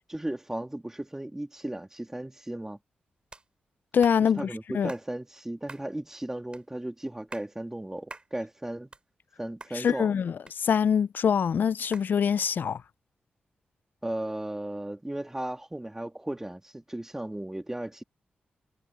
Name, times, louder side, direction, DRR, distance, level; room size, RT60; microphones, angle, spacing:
voice 1, 0.1-2.8 4.4-8.9 9.4-10.2 14.0-18.0, right 1 dB, 15° right, 2.8 m, -35 dB
sound 1, 3.3-3.5 4.0-4.2 4.9-5.1 5.7-5.9 6.5-6.7 7.1-7.5 8.1-8.3 8.7-9.3 9.6-9.8 10.5-11.0 11.9-12.1, right 2 dB, 30° right, 3.8 m, -45 dB
voice 2, 3.9-4.9 9.7-12.8, left 7 dB, 65° left, 0.3 m, -25 dB
cardioid pair, 65°, 3 cm